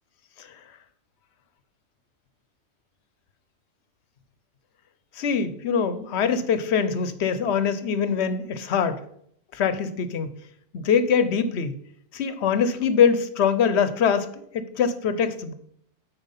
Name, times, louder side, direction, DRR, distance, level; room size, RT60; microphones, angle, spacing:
voice 1, 5.2-9.0 9.5-10.3 10.7-11.8 12.1-14.3 14.5-15.5, left 6 dB, 75° left, 12 dB, 1.0 m, -23 dB
9.0 x 4.4 x 5.7 m, 0.69 s
omnidirectional pair, 1.1 m